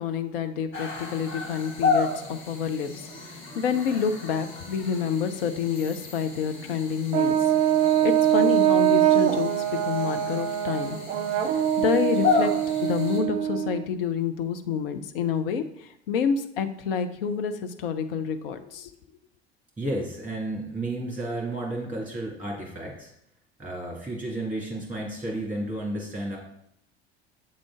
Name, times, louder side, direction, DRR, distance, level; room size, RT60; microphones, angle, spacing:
voice 1, 0.0-7.4 8.0-9.5 9.8-11.0 11.5-12.5 12.8-18.9, left 7 dB, 60° left, 8 dB, 0.6 m, -28 dB
sound 1, 0.7-13.2, left 4 dB, 40° left, 1.4 m, -32 dB
Brass instrument, 7.1-13.8, right 11 dB, 20° right, 0.3 m, -23 dB
voice 2, 19.8-23.1 23.6-26.4, right 1 dB, 5° right, -2 dB, 1.8 m, -32 dB
7.5 x 3.7 x 3.7 m, 0.74 s
figure-of-eight pair, 70°, 32 cm